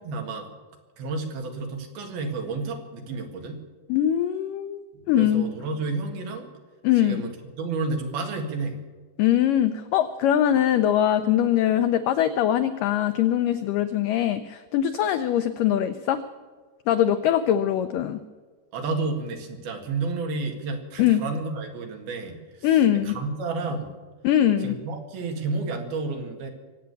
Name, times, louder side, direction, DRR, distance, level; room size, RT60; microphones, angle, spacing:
voice 1, 0.1-0.5 1.0-3.6 5.2-6.5 7.0-8.8 18.7-22.7 23.1-23.9 24.6-26.5, right 3 dB, 70° right, 3 dB, 3.8 m, -31 dB
voice 2, 3.9-5.5 6.8-7.3 9.2-16.2 16.9-18.2 21.0-21.2 22.6-23.2 24.2-24.7, left 11 dB, 85° left, 10 dB, 1.9 m, -22 dB
24.0 x 8.7 x 7.0 m, 1.4 s
omnidirectional pair, 4.7 m